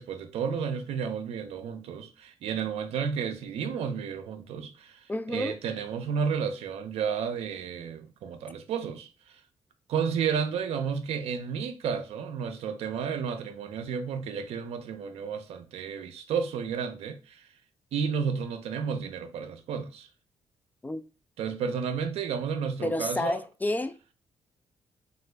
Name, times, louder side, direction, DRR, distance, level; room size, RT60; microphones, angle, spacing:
voice 1, 0.0-5.0 5.3-9.1 9.9-17.4 17.9-20.1 21.4-23.4, right 6 dB, 75° right, 0.4 m, -32 dB
voice 2, 5.1-5.6 20.8-21.0 22.8-24.1, left 1 dB, 15° left, 0.3 m, -30 dB
2.9 x 2.4 x 3.3 m
supercardioid pair, 55°, 11 cm